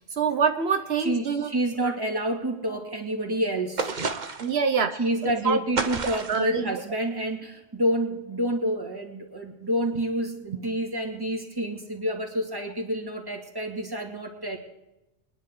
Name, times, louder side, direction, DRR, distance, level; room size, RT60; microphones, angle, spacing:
voice 1, 0.0-1.5 1.8-1.9 4.4-5.6 6.3-6.7, right 6 dB, 80° right, 7 dB, 1.1 m, -26 dB
voice 2, 1.0-4.2 5.0-14.6, right 1 dB, 20° right, 1 dB, 2.3 m, -28 dB
sound 1, 3.8-4.6 5.8-6.5, right 4 dB, 50° right, 1.1 m, -29 dB
23.5 x 10.5 x 3.8 m, 0.96 s
omnidirectional pair, 1.0 m